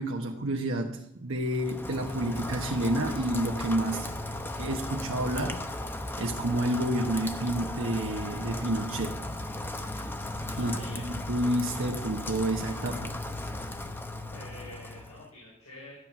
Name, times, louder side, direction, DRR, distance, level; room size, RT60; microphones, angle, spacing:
voice 1, 0.0-4.1 4.6-5.6 6.2-9.2 10.6-13.2, right 1 dB, 60° right, 1 dB, 1.1 m, -29 dB
Rain, 1.5-15.3, left 1 dB, 10° left, 0.8 m, -36 dB
voice 2, 10.5-11.1 14.3-16.1, left 1 dB, 85° left, -4 dB, 4.6 m, -46 dB
13.0 x 9.2 x 5.8 m, 0.83 s
head